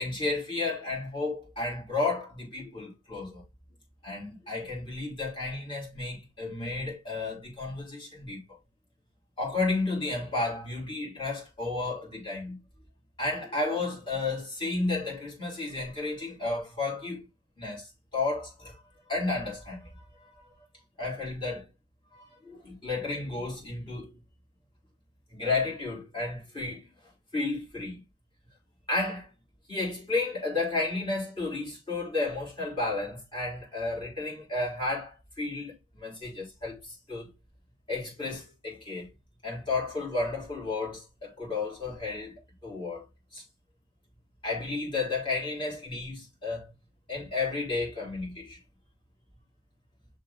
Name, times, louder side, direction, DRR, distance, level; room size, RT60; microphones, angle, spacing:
voice 1, 0.0-3.4 4.0-8.4 9.4-12.6 13.2-17.3 17.6-18.8 19.1-20.4 21.0-21.7 22.1-24.1 25.3-26.9 27.3-28.0 28.9-29.3 29.7-37.3 37.9-39.1 39.4-43.1 43.3-43.4 44.4-46.7 47.1-48.6, left 3 dB, 25° left, 4.4 m, -32 dB
6.0 x 3.9 x 4.5 m
head